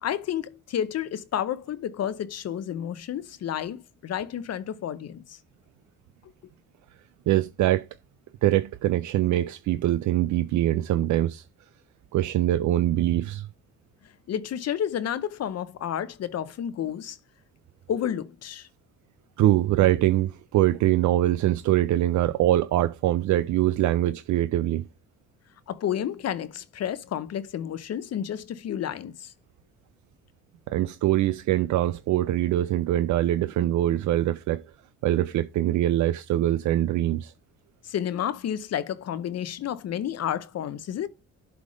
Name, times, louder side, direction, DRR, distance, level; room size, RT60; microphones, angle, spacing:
voice 1, 0.0-5.4 14.3-17.2 17.9-18.7 25.7-29.3 37.9-41.1, left 9 dB, 55° left, 0.7 m, -31 dB
voice 2, 7.3-7.9 8.4-11.4 12.1-13.5 19.4-24.8 30.7-34.7 35.0-37.3, right 13 dB, 70° right, 0.5 m, -23 dB
7.7 x 3.5 x 5.0 m
cardioid pair, 90°, 30 cm